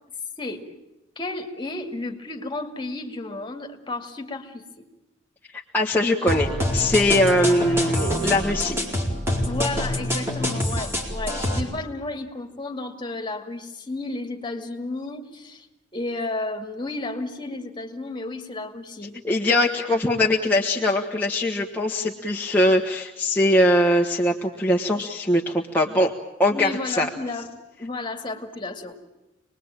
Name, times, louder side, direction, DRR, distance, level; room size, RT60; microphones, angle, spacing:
voice 1, 1.2-4.9 9.4-15.7 15.9-19.2 26.5-27.5 27.8-29.0, left 2 dB, 25° left, 4 dB, 2.5 m, -32 dB
voice 2, 5.7-8.8 11.3-11.5 19.2-26.1 26.4-27.1, left 1 dB, 10° left, -2 dB, 1.5 m, -21 dB
sound 1, 6.3-11.6, left 1 dB, 15° right, 4.4 m, -26 dB
sound 2, 8.0-12.1, right 5 dB, 75° right, 4.7 m, -40 dB
26.5 x 21.0 x 9.1 m, 0.94 s
head